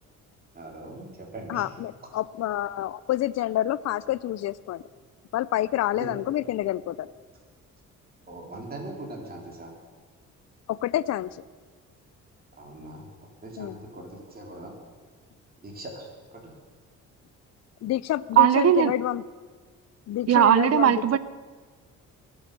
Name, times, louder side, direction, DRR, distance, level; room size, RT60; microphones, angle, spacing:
voice 1, 0.5-1.6 6.0-6.1 8.3-9.7 12.6-13.1 13.4-14.7 15.6-16.1 16.4-16.5, right 2 dB, 30° right, -1 dB, 3.5 m, -40 dB
voice 2, 1.5-4.8 5.3-7.1 10.7-11.3 13.6-13.8 17.8-19.2 20.1-21.2, left 13 dB, 60° left, 18 dB, 0.5 m, -28 dB
voice 3, 18.4-18.9 20.3-21.2, right 10 dB, 55° right, 15 dB, 0.8 m, -18 dB
21.5 x 7.2 x 6.8 m, 1.5 s
cardioid pair, 90°, 30 cm